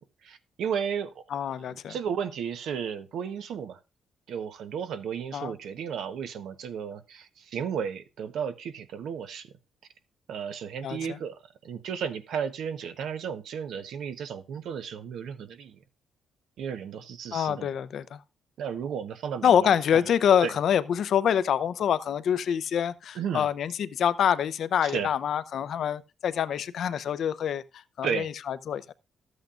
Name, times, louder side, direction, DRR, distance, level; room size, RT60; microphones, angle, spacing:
voice 1, 0.2-1.2 1.7-3.8 4.3-9.5 10.3-15.8 16.6-17.7 18.6-20.0 20.4-20.5 23.1-23.5 24.8-25.1 28.0-28.3, right 7 dB, 75° right, 1.0 m, -34 dB
voice 2, 1.3-1.9 5.3-5.5 10.8-11.2 17.3-18.2 19.4-27.6 28.0-28.8, left 9 dB, 65° left, 0.6 m, -26 dB
13.0 x 8.2 x 2.5 m
cardioid pair, 125°, 0 cm